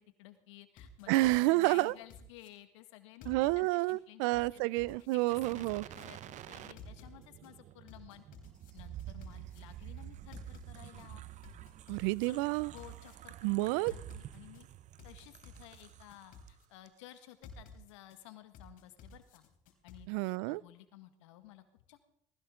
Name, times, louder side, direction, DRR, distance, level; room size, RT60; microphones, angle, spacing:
voice 1, 0.0-1.1 1.5-4.6 5.1-8.2 8.7-11.2 12.3-12.4 12.7-14.7 15.0-19.4 19.8-22.1, left 14 dB, 90° left, 9 dB, 1.7 m, -55 dB
sound 1, 0.8-2.5 3.2-3.9 4.3-6.0 6.8-7.5 7.9-9.6 10.3-11.1 11.4-13.1 13.9-14.6 15.0-16.6 17.4-18.2 18.5-20.0, left 6 dB, 65° left, 3.6 m, -54 dB
voice 2, 1.1-1.9 3.3-5.8 11.9-12.7 13.4-13.9 20.1-20.6, right 21 dB, 80° right, 24 dB, 0.5 m, -29 dB
sound 2, 5.3-16.5 16.9-17.0, right 12 dB, 55° right, 0.8 m, -49 dB
19.0 x 16.5 x 3.8 m, 0.72 s
supercardioid pair, 80°, 15 cm